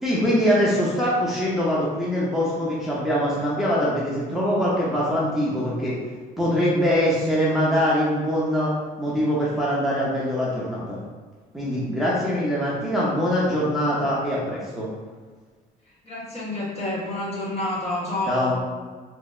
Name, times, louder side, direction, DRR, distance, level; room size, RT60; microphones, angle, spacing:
voice 1, 0.0-6.0 6.4-8.7 9.0-11.0 11.5-14.9 18.3-18.5, equal, ahead, -7 dB, 0.7 m, -23 dB
voice 2, 16.0-18.5, left 1 dB, 40° left, -6 dB, 1.2 m, -29 dB
3.3 x 2.9 x 2.3 m, 1.5 s
cardioid pair, 110°, 17 cm